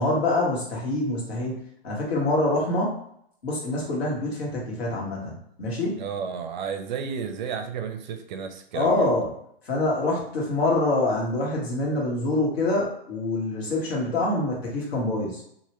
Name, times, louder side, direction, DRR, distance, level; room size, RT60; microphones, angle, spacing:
voice 1, 0.0-1.6 1.8-3.0 3.4-6.0 8.7-9.3 9.6-15.4, left 2 dB, 75° left, -3 dB, 1.4 m, -25 dB
voice 2, 6.0-9.1, right 6 dB, 50° right, 6 dB, 0.5 m, -32 dB
2.8 x 2.6 x 2.9 m, 0.71 s
hypercardioid pair, 130°, 31 cm